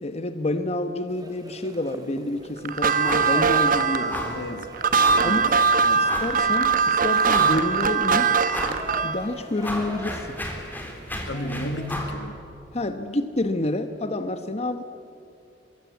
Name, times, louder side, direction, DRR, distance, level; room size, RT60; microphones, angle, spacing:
voice 1, 0.0-4.3 5.2-5.5 5.9-8.3 9.0-10.4 12.7-14.8, left 1 dB, 35° left, 9 dB, 1.0 m, -28 dB
sound 1, 1.1-11.9, right 1 dB, 20° right, 3.0 m, -43 dB
sound 2, 2.6-9.2, right 5 dB, 50° right, 1.1 m, -21 dB
sound 3, 3.0-3.4 3.6-3.8 4.1-4.4 5.0-5.4 6.0-6.4 6.9-7.0 7.2-7.8 8.5-8.8 9.2-12.2, left 1 dB, 10° left, 3.7 m, -32 dB
voice 2, 4.0-5.4 5.8-6.0 11.2-12.4, left 1 dB, 80° left, 8 dB, 2.1 m, -34 dB
23.5 x 23.0 x 8.2 m, 2.7 s
head